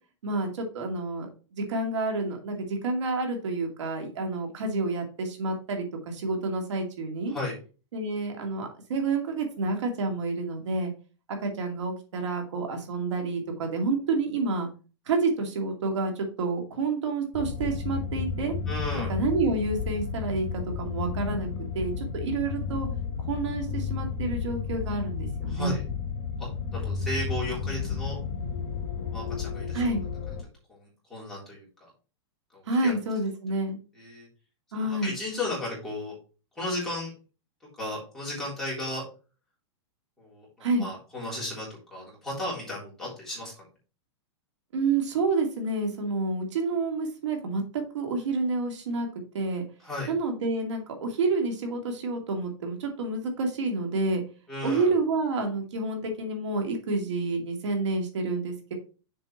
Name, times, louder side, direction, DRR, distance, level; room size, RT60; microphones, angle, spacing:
voice 1, 0.2-7.3 7.9-10.9 11.4-14.7 15.1-18.5 19.1-21.5 21.7-22.9 23.3-25.7 29.7-30.0 32.7-33.8 34.7-35.1 40.6-40.8 44.7-49.1 49.3-49.6 50.1-54.2 54.6-58.7, right 3 dB, 85° right, 3 dB, 2.4 m, -29 dB
sound 1, 17.3-30.4, left 6 dB, 30° left, 3.1 m, -32 dB
voice 2, 18.7-19.1 25.5-25.8 26.4-28.2 29.1-29.9 30.7-31.7 32.5-32.9 33.9-34.3 34.7-36.1 36.5-37.1 37.8-39.0 40.2-43.5 49.8-50.1 54.5-54.9, left 1 dB, 5° left, -7 dB, 3.4 m, -35 dB
6.9 x 5.2 x 4.4 m, 0.35 s
supercardioid pair, 165°, 15 cm